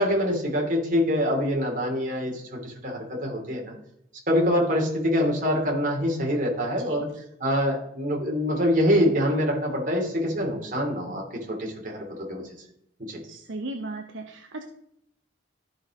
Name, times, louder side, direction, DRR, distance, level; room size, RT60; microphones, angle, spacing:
voice 1, 0.0-3.7 4.3-7.1 7.4-12.4 13.1-13.2, equal, 45° right, -1 dB, 2.7 m, -25 dB
voice 2, 13.2-14.6, right 2 dB, 75° right, 4 dB, 0.8 m, -36 dB
13.5 x 5.1 x 3.7 m, 0.74 s
head